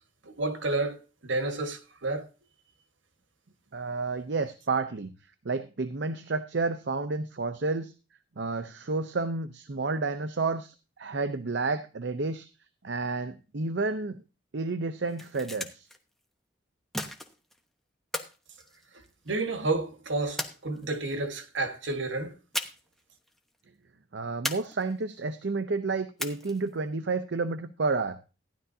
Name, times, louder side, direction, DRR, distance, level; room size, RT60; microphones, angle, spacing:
voice 1, 0.2-2.3 19.3-22.3, right 2 dB, 80° right, 1.5 m, -30 dB
voice 2, 3.7-5.1 5.4-7.9 8.4-12.5 12.8-14.2 14.5-15.9 24.1-28.2, right 3 dB, 65° right, 0.7 m, -30 dB
sound 1, 15.0-16.0 16.9-17.6 18.1-19.4 20.4-21.1 22.5-23.0 23.3-23.4 24.4-25.2 26.2-26.7, left 1 dB, ahead, 1.1 m, -36 dB
15.5 x 11.0 x 2.7 m
head